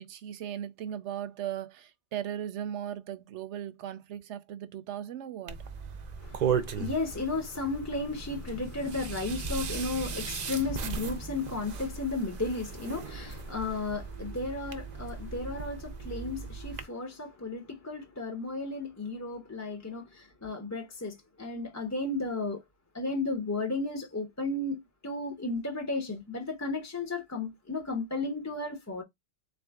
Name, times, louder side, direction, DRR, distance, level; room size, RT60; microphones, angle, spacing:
voice 1, 0.0-5.6, right 10 dB, 75° right, 0.9 m, -37 dB
sound 1, 5.5-16.8, right 6 dB, 55° right, 0.5 m, -37 dB
voice 2, 6.2-22.6 22.9-29.0, left 3 dB, 20° left, 0.5 m, -34 dB
3.9 x 2.6 x 3.4 m
omnidirectional pair, 1.3 m